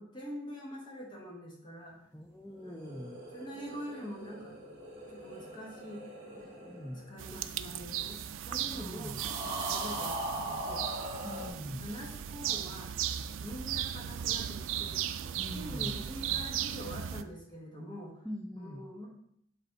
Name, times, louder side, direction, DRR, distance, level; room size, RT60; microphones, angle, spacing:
voice 1, 0.0-2.0 2.6-2.9 3.3-4.6 5.1-6.0 7.1-9.2 9.7-10.8 11.4-13.0 13.4-18.3 18.5-19.1, equal, 25° left, -2 dB, 1.4 m, -45 dB
voice 2, 2.1-3.2 6.4-7.1 8.7-9.2 11.2-11.9 15.4-16.0 18.2-18.9, equal, 5° left, 0 dB, 0.4 m, -43 dB
sound 1, 2.5-8.1 9.1-11.5, right 1 dB, 35° right, 2.0 m, -41 dB
sound 2, 7.2-17.2, right 10 dB, 80° right, 0.3 m, -36 dB
8.0 x 3.4 x 3.9 m, 0.71 s
head